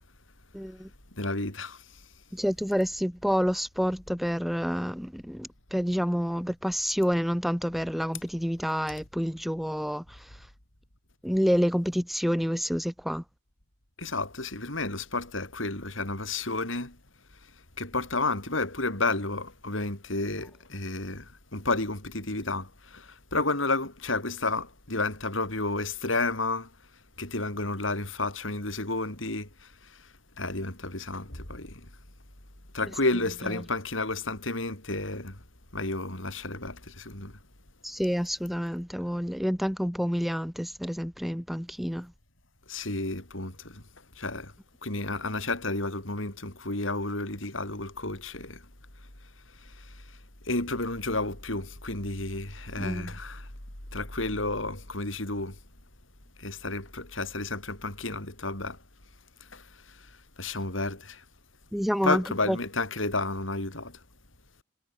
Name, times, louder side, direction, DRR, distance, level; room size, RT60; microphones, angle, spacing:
voice 1, 0.5-0.9 2.3-10.3 11.2-13.2 32.8-33.7 37.8-42.1 52.8-53.1 61.7-62.6, equal, ahead, 1.7 m, -29 dB
voice 2, 1.2-1.8 14.0-17.0 17.8-26.7 27.2-30.0 30.4-31.9 32.7-35.4 35.7-37.4 42.7-43.8 44.2-44.5 44.8-48.6 49.6-49.9 50.4-53.5 53.9-55.6 56.4-58.8 59.5-60.1 60.4-61.2 62.0-64.0, left 2 dB, 75° left, 6.2 m, -31 dB
head